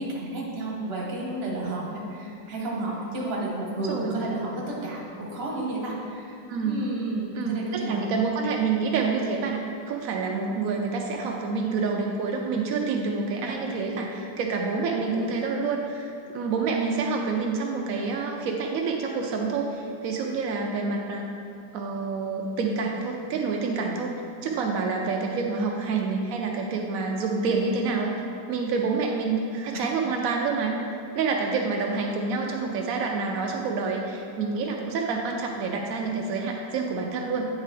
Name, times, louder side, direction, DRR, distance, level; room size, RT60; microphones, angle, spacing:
voice 1, 0.0-8.0 10.5-10.6 11.0-11.1 13.4-13.6 25.1-25.7 29.7-29.8 31.5-31.6, right 2 dB, 40° right, -3 dB, 1.1 m, -32 dB
voice 2, 6.5-6.8 7.4-9.6 9.9-21.2 21.7-24.1 24.4-28.1 28.5-30.7 31.1-37.5, right 4 dB, 90° right, 1 dB, 0.7 m, -27 dB
9.2 x 3.6 x 3.3 m, 2.4 s
omnidirectional pair, 2.0 m